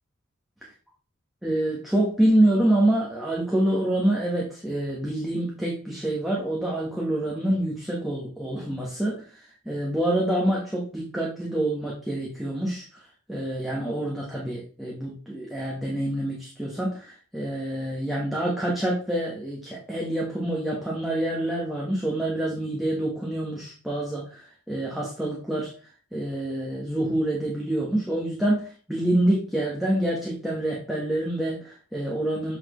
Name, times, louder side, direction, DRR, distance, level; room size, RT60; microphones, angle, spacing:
voice 1, 1.4-9.2 9.6-12.8 13.3-24.4 24.7-25.7 26.1-32.6, right 1 dB, ahead, -5 dB, 1.3 m, -26 dB
7.4 x 4.1 x 3.1 m, 0.40 s
head